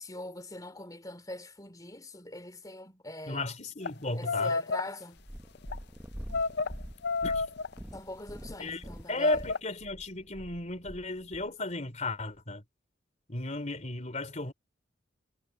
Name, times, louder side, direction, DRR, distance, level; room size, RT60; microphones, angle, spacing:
voice 1, 0.0-3.4 4.1-5.2 7.9-9.3, left 2 dB, 20° left, 3.1 m, -43 dB
voice 2, 3.3-4.6 7.2-7.4 8.6-8.8 9.1-12.6 13.3-14.5, left 2 dB, 40° left, 3.4 m, -34 dB
sound 1, 3.8-3.9 4.2-4.9 5.6-5.8 6.3-6.7 7.0-7.7 8.4-8.7 9.2-9.6, left 4 dB, 60° left, 0.5 m, -30 dB
Purr, 5.2-11.5 12.2-12.3, equal, 10° right, 1.0 m, -45 dB
head